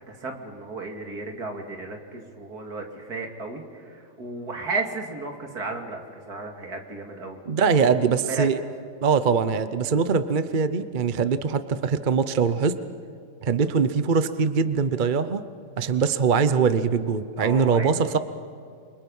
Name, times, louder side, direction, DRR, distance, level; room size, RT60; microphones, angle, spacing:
voice 1, 0.0-7.4 7.7-7.9 8.3-8.5 13.6-13.7 17.4-18.1, right 3 dB, 65° right, 2 dB, 3.1 m, -34 dB
voice 2, 7.5-8.6 9.0-12.8 13.4-15.4 15.8-18.2, right 5 dB, 40° right, 11 dB, 0.7 m, -22 dB
28.5 x 24.5 x 5.6 m, 2.4 s
omnidirectional pair, 1.8 m